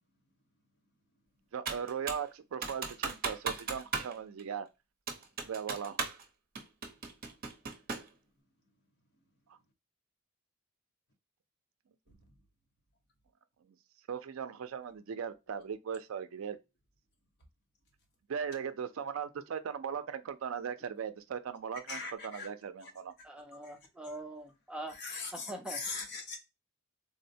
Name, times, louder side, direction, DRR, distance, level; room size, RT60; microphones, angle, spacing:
voice 1, 1.5-4.7 5.5-6.0 14.1-16.6 18.3-23.1, right 7 dB, 70° right, 0.4 m, -38 dB
Computer keyboard, 1.7-2.3 2.6-4.1 4.4-4.5 5.1-6.2 6.6-8.1, right 5 dB, 40° right, 0.7 m, -37 dB
voice 2, 21.9-22.5 22.8-22.9 23.6-23.7 24.9-26.4, left 4 dB, 50° left, 0.9 m, -40 dB
voice 3, 23.2-24.9 25.3-25.8, right 1 dB, 5° right, 0.4 m, -43 dB
3.7 x 2.1 x 2.6 m
head